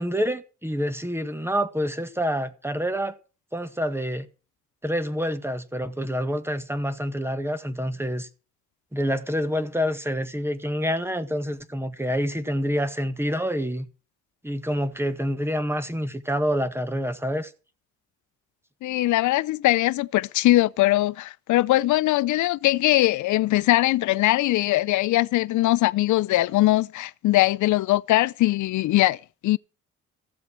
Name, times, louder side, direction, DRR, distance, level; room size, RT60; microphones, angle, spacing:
voice 1, 0.0-3.1 3.5-4.3 4.8-8.3 8.9-13.9 14.4-17.5, equal, 10° right, 1.8 m, -27 dB
voice 2, 18.8-29.6, left 16 dB, 75° left, 0.6 m, -21 dB
14.5 x 7.6 x 7.5 m
cardioid pair, 90°, 30 cm